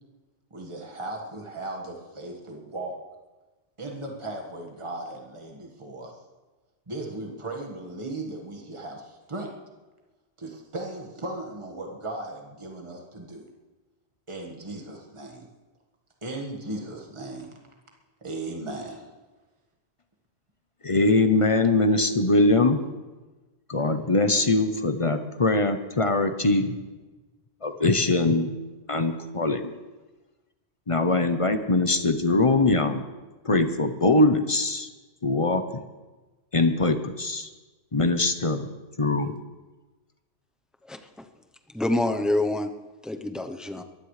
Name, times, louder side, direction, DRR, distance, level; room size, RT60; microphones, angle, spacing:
voice 1, 0.5-3.0 3.8-6.1 6.9-9.5 10.4-13.5 14.3-15.5 16.2-17.5 18.2-19.1, right 2 dB, 25° right, 1 dB, 1.7 m, -37 dB
voice 2, 20.8-22.8 23.7-26.8 27.6-28.5 28.9-29.7 30.9-33.0 33.4-34.9 35.2-35.8 36.5-37.5 37.9-38.7 39.0-39.4, left 2 dB, 30° left, 8 dB, 0.8 m, -22 dB
voice 3, 40.9-41.3 41.7-42.7 43.0-43.8, left 1 dB, ahead, 6 dB, 0.6 m, -27 dB
22.5 x 15.0 x 3.3 m, 1.2 s
omnidirectional pair, 1.2 m